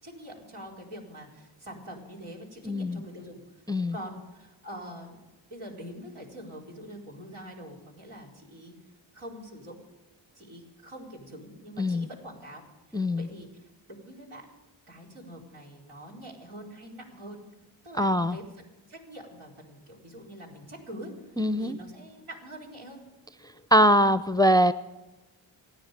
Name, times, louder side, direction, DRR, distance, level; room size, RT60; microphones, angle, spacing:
voice 1, 0.0-3.4 3.9-5.2 5.5-8.8 9.1-9.8 10.3-12.6 12.9-14.4 14.9-17.4 17.8-18.4 18.9-23.0, equal, 80° right, -3 dB, 4.7 m, -44 dB
voice 2, 2.6-3.0 3.7-4.0 11.8-12.1 12.9-13.3 18.0-18.4 21.4-21.8 23.7-24.7, equal, 10° left, 13 dB, 0.5 m, -22 dB
28.5 x 9.6 x 5.2 m, 1.1 s
supercardioid pair, 40°, 49 cm